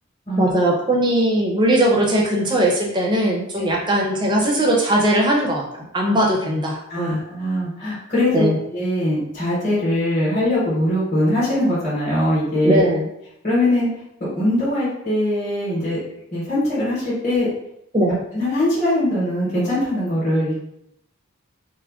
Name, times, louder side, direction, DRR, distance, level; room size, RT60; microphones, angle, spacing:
voice 1, 0.4-7.2 8.3-8.6 12.6-13.1 17.9-18.2, right 1 dB, 20° right, -1 dB, 0.4 m, -19 dB
voice 2, 6.9-8.5 8.7-12.9 13.4-13.9 14.2-16.0 16.3-17.5 18.3-20.5, left 1 dB, 30° left, -8 dB, 0.8 m, -21 dB
3.4 x 2.0 x 2.3 m, 0.78 s
head